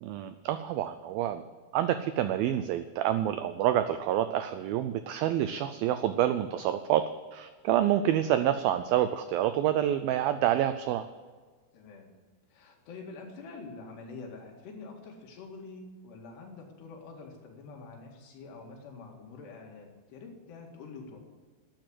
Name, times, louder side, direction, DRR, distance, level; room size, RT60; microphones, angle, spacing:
voice 1, 0.0-1.4 1.7-7.0 7.3-11.1, right 11 dB, 90° right, 10 dB, 2.1 m, -27 dB
voice 2, 11.7-12.1 12.5-21.2, left 4 dB, 75° left, 1 dB, 4.1 m, -46 dB
12.5 x 9.3 x 7.9 m, 1.4 s
omnidirectional pair, 4.9 m